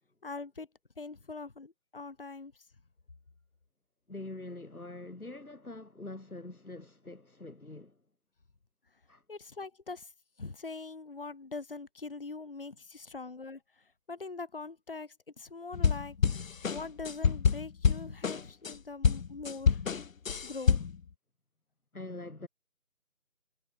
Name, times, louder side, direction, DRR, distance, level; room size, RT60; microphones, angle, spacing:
voice 1, 0.2-0.7 1.0-2.5 9.3-10.1 10.4-19.8 20.4-20.9, left 3 dB, 40° left, 1.9 m, -43 dB
voice 2, 4.1-8.0 9.1-9.2 21.9-22.5, left 2 dB, 85° left, 3.9 m, -44 dB
sound 1, 15.7-18.8 19.0-21.0, left 6 dB, 70° left, 0.7 m, -27 dB
figure-of-eight pair, 165°, 43 cm